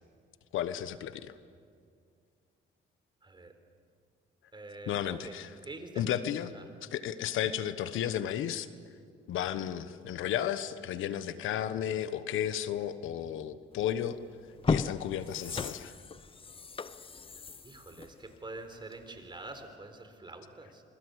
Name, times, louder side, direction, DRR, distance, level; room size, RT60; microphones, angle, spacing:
voice 1, 0.5-1.3 4.9-5.6 6.0-6.5 6.8-8.7 9.3-14.2 14.7-15.9, left 10 dB, 85° left, 12 dB, 1.2 m, -33 dB
voice 2, 3.2-3.5 4.5-5.3 5.6-6.0 6.5-6.6 17.6-20.8, right 2 dB, 25° right, 7 dB, 4.3 m, -46 dB
sound 1, 13.9-14.0 14.5-19.2 19.6-19.7, left 4 dB, 25° left, 0.8 m, -35 dB
28.0 x 22.0 x 8.2 m, 2.2 s
cardioid pair, 90°, 20 cm